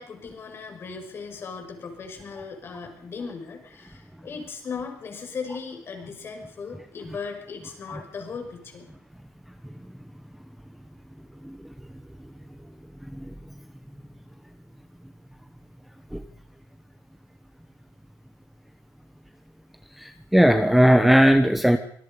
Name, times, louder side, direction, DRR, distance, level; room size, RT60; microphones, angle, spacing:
voice 1, 0.0-8.9, left 5 dB, 40° left, 4 dB, 5.9 m, -37 dB
voice 2, 20.0-21.8, equal, ahead, 8 dB, 1.2 m, -18 dB
25.5 x 20.5 x 5.4 m, 0.66 s
cardioid pair, 150°, 6 cm